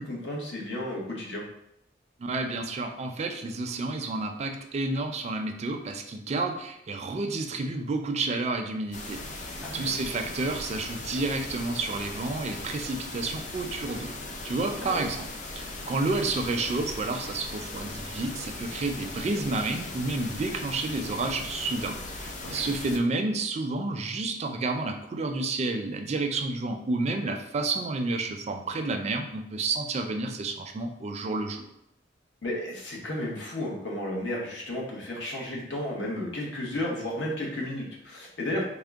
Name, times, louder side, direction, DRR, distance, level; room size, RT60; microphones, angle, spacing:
voice 1, 0.0-1.4 9.6-9.9 14.8-15.0 22.4-22.7 32.4-38.6, left 1 dB, 70° left, -2 dB, 0.9 m, -33 dB
voice 2, 2.2-9.2 9.7-14.1 14.4-15.3 15.5-31.7, right 3 dB, 35° right, 5 dB, 0.3 m, -30 dB
sound 1, 8.9-23.0, left 2 dB, 45° left, 0.4 m, -39 dB
3.6 x 2.0 x 3.4 m, 0.79 s
head